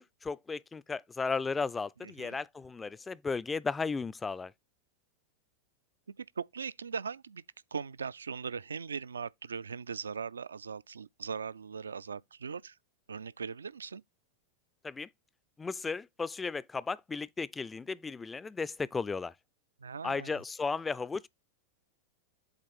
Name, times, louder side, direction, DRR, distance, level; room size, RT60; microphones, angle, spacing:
voice 1, 0.0-4.5 14.8-15.1 15.6-19.3 20.0-21.3, left 4 dB, 15° left, 0.3 m, -35 dB
voice 2, 2.0-2.4 6.2-7.4 7.7-12.8 13.1-14.0 19.8-20.3, right 6 dB, 70° right, 0.3 m, -39 dB
7.9 x 3.5 x 4.3 m
figure-of-eight pair, 90°, 0 cm